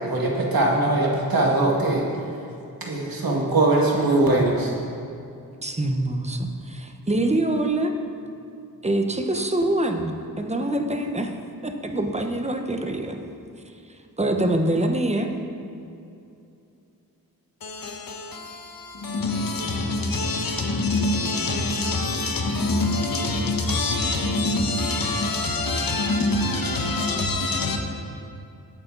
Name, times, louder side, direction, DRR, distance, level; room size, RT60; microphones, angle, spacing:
voice 1, 0.0-2.1 2.8-4.7, right 2 dB, 65° right, 2.3 m, -21 dB
voice 2, 5.6-8.0 8.8-11.3 11.6-13.2 14.2-15.3, right 1 dB, 15° right, 1.1 m, -25 dB
voice 3, 17.6-27.8, left 2 dB, 65° left, 1.5 m, -25 dB
17.5 x 8.9 x 4.0 m
wide cardioid pair, 70°, 38 cm